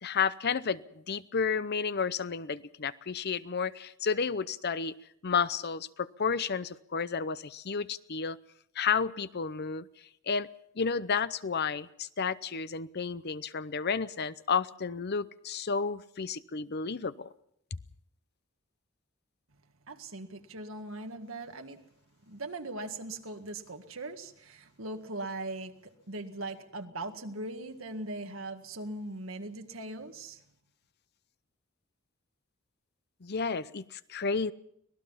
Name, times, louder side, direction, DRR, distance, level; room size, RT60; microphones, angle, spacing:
voice 1, 0.0-4.9 5.2-8.4 8.8-9.9 10.3-10.5 10.8-17.3 33.2-34.5, left 5 dB, 50° left, 0.7 m, -31 dB
voice 2, 19.8-21.8 22.3-30.4, right 2 dB, 70° right, 1.9 m, -40 dB
25.0 x 18.5 x 5.7 m
head